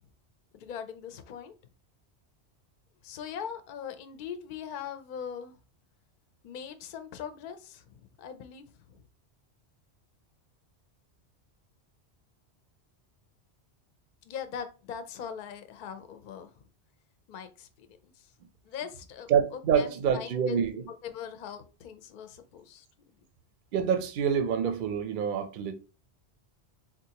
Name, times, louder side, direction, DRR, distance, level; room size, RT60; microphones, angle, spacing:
voice 1, 0.5-1.5 3.0-5.5 6.4-9.0 14.2-16.5 17.3-18.1 18.6-19.3 19.8-20.6 21.0-22.9, left 8 dB, 60° left, 0.6 m, -41 dB
voice 2, 19.3-20.8 23.7-25.7, right 7 dB, 60° right, 0.6 m, -26 dB
3.9 x 2.3 x 2.8 m
omnidirectional pair, 1.1 m